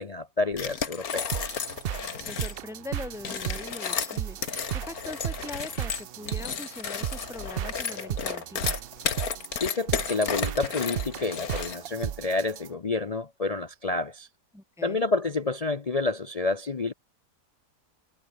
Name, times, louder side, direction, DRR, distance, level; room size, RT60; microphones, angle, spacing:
voice 1, 0.0-1.4 9.6-14.3 14.8-16.9, left 3 dB, 45° left, 0.5 m, -29 dB
sound 1, 0.5-2.6 3.1-12.0, left 7 dB, 60° left, 2.1 m, -33 dB
sound 2, 1.3-12.7, right 10 dB, 85° right, 0.5 m, -35 dB
voice 2, 2.3-4.4 4.7-8.7 14.5-15.0, left 2 dB, ahead, 0.9 m, -41 dB
omnidirectional pair, 1.7 m